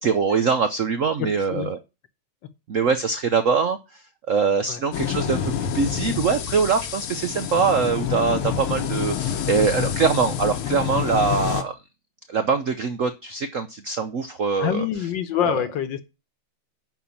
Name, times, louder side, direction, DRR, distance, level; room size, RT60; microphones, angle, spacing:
voice 1, 0.0-1.8 2.7-3.8 4.3-5.4 5.7-11.7 12.3-14.8, right 5 dB, 70° right, 0.7 m, -23 dB
voice 2, 1.2-1.7 4.7-4.8 14.6-16.0, left 9 dB, 65° left, 1.5 m, -26 dB
sound 1, 4.9-11.6, left 8 dB, 80° left, 1.9 m, -27 dB
10.5 x 4.3 x 7.0 m
omnidirectional pair, 2.4 m